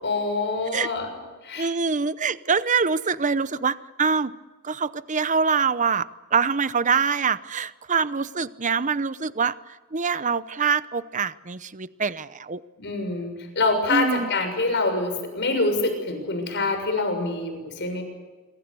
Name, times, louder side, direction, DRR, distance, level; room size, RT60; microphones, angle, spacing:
voice 1, 0.0-1.2 1.4-1.7 12.8-18.0, left 3 dB, 50° left, 6 dB, 6.8 m, -25 dB
voice 2, 1.6-4.3 4.6-9.6 9.9-12.6 13.9-14.3, right 5 dB, 35° right, 15 dB, 0.8 m, -24 dB
26.5 x 25.5 x 7.0 m, 1.3 s
head